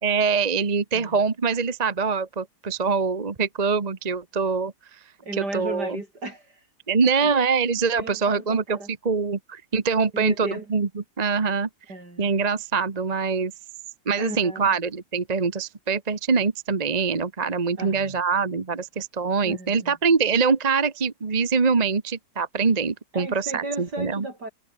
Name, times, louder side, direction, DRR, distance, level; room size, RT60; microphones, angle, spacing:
voice 1, 0.0-4.7 5.4-6.0 6.9-8.8 9.0-10.9 11.2-11.7 12.2-13.5 14.1-24.3, right 5 dB, 25° right, 1.1 m, -24 dB
voice 2, 5.2-6.6 7.0-7.3 7.9-8.9 10.1-10.7 11.9-12.4 14.2-14.7 17.8-18.2 19.4-19.9 23.1-24.5, right 2 dB, 65° right, 8.2 m, -35 dB
omnidirectional pair, 1.9 m